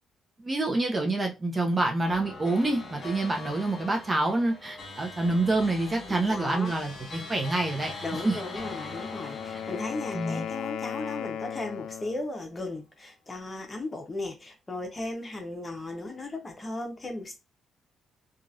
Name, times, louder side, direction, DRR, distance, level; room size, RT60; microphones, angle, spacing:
voice 1, 0.4-7.9 8.2-8.4 10.1-10.4, right 2 dB, 25° right, 0.7 m, -27 dB
sound 1, 2.1-11.7, left 2 dB, 45° left, 1.3 m, -42 dB
voice 2, 6.2-6.7 8.0-17.4, left 2 dB, 25° left, 1.0 m, -36 dB
Wind instrument woodwind instrument, 8.4-12.3, left 8 dB, 85° left, 0.3 m, -37 dB
3.0 x 2.5 x 2.6 m
cardioid pair, 90°, 0 cm